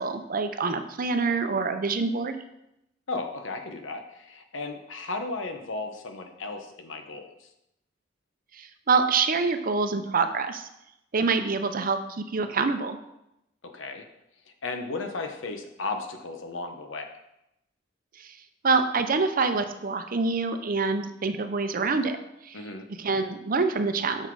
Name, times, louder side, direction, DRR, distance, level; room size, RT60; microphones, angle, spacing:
voice 1, 0.0-2.4 8.5-10.7 11.1-13.0 18.2-18.4 18.6-22.2 22.4-22.6 23.0-24.3, right 4 dB, 45° right, 8 dB, 0.6 m, -26 dB
voice 2, 3.1-7.3 13.7-14.0 14.6-17.1 22.5-22.8, left 3 dB, 90° left, 5 dB, 1.0 m, -35 dB
6.5 x 6.1 x 4.7 m, 0.85 s
head